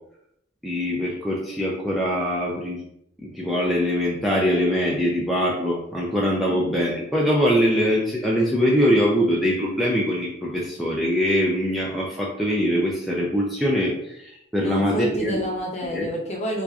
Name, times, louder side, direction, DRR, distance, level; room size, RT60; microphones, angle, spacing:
voice 1, 0.6-2.8 3.2-15.3 15.9-16.1, equal, ahead, -5 dB, 0.3 m, -23 dB
voice 2, 14.6-16.6, equal, 30° left, -2 dB, 0.7 m, -29 dB
4.4 x 2.5 x 2.3 m, 0.78 s
head